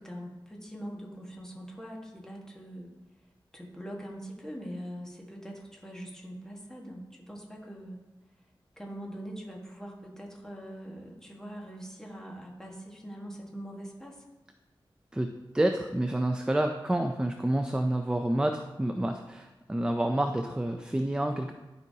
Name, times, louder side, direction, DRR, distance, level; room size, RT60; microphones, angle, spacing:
voice 1, 0.0-2.9 3.5-8.0 8.8-14.2, equal, 5° left, -2 dB, 1.4 m, -42 dB
voice 2, 15.1-21.5, right 1 dB, 10° right, 5 dB, 0.4 m, -29 dB
12.0 x 5.3 x 2.8 m, 1.1 s
wide cardioid pair, 120°, 9 cm